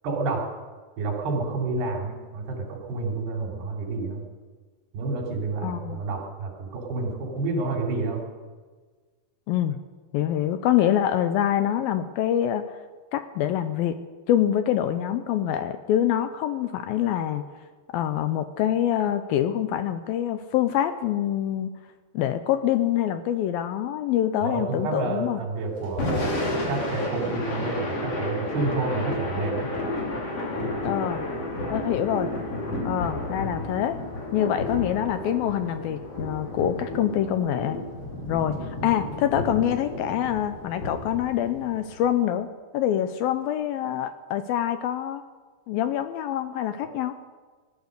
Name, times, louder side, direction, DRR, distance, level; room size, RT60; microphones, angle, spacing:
voice 1, 0.0-0.4 1.0-4.2 4.9-8.2 24.4-26.3 26.7-29.7, right 3 dB, 80° right, 0 dB, 5.2 m, -29 dB
voice 2, 5.6-6.0 9.5-9.8 10.1-12.7 13.1-14.0 14.3-17.4 17.9-21.8 22.1-25.4 30.8-31.2 31.7-32.3 32.8-34.0 34.3-37.8 38.3-45.2 45.7-47.2, left 11 dB, 80° left, 10 dB, 2.2 m, -25 dB
Thunder / Rain, 25.8-42.1, left 1 dB, 40° left, 3.6 m, -31 dB
18.5 x 12.0 x 6.6 m, 1.4 s
omnidirectional pair, 4.6 m